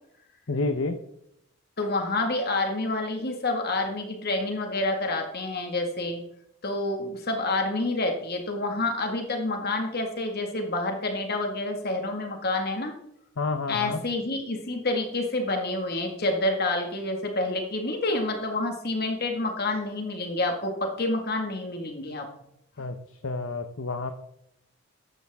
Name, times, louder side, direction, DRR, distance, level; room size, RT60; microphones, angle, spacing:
voice 1, 0.5-1.0 13.4-14.0 22.8-23.0 23.2-24.1, left 3 dB, 65° left, 7 dB, 0.9 m, -29 dB
voice 2, 1.8-6.2 6.6-12.9 13.7-22.3, left 2 dB, 45° left, 3 dB, 1.9 m, -28 dB
14.5 x 11.0 x 3.6 m, 0.76 s
head